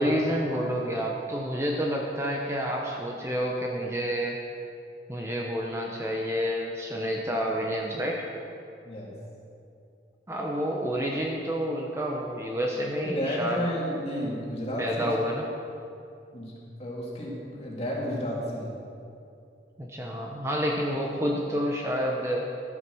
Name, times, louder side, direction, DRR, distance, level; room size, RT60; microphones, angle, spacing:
voice 1, 0.0-4.4 5.1-8.3 10.3-13.7 14.8-15.5 19.8-22.4, equal, 15° right, -1 dB, 0.9 m, -29 dB
voice 2, 13.0-15.1 16.3-16.5 16.8-18.8, equal, 35° left, -4 dB, 2.6 m, -32 dB
13.0 x 8.4 x 6.2 m, 2.5 s
head